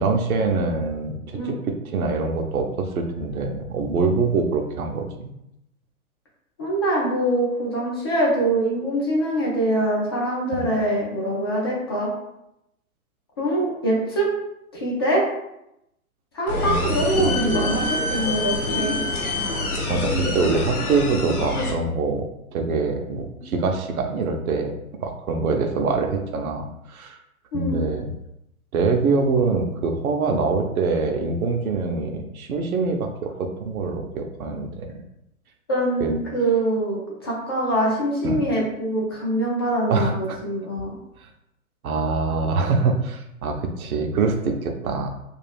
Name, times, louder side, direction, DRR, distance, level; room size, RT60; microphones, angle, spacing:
voice 1, 0.0-5.3 10.5-10.7 16.6-16.9 17.2-17.7 19.9-24.7 25.0-27.2 27.5-28.1 28.7-34.9 36.0-36.1 38.2-38.4 39.9-40.4 41.8-45.1, right 4 dB, 75° right, 4 dB, 0.7 m, -24 dB
voice 2, 6.6-12.1 13.4-14.3 14.7-15.2 16.3-17.8 18.1-19.0 27.5-27.8 35.7-40.9, right 1 dB, 20° left, -4 dB, 0.3 m, -24 dB
sound 1, 16.5-21.7, left 2 dB, 85° left, 0.9 m, -26 dB
2.5 x 2.3 x 3.3 m, 0.83 s
hypercardioid pair, 125°, 43 cm